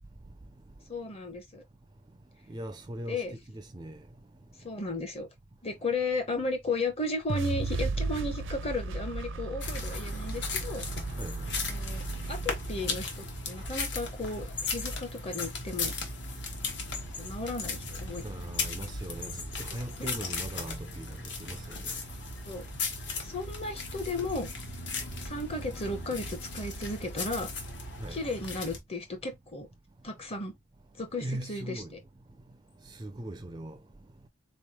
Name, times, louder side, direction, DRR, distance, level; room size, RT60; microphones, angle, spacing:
voice 1, 0.9-1.6 3.1-3.3 4.6-5.3 5.6-10.8 11.6-15.9 17.2-18.2 20.0-20.1 22.5-22.6 23.2-24.5 25.2-27.5 28.1-29.7 30.0-30.5 31.0-32.0, left 2 dB, 30° left, 0.9 m, -35 dB
voice 2, 2.5-4.0 11.2-11.4 18.2-21.8 28.0-28.2 31.2-31.9 33.0-33.8, right 1 dB, 20° right, 0.4 m, -39 dB
sound 1, 7.3-13.5, right 3 dB, 80° right, 0.5 m, -35 dB
sound 2, 9.6-28.8, left 3 dB, 65° left, 1.1 m, -37 dB
3.9 x 3.2 x 2.9 m
head